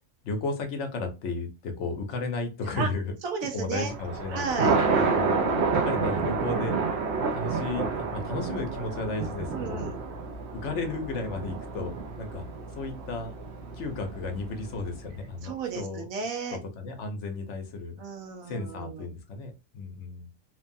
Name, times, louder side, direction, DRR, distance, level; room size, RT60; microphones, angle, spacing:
voice 1, 0.2-3.1 3.5-5.4 5.8-6.8 7.3-9.9 10.6-12.4 12.7-13.3 13.7-16.0 16.5-18.0 18.5-20.3, left 3 dB, 65° left, 5 dB, 0.9 m, -34 dB
voice 2, 3.2-3.9 4.3-4.8 9.5-10.1 15.4-16.6 18.0-19.1, right 5 dB, 85° right, 4 dB, 1.2 m, -33 dB
Thunder, 3.8-15.1, right 4 dB, 60° right, 0.9 m, -29 dB
3.2 x 2.2 x 2.5 m, 0.27 s
omnidirectional pair, 1.4 m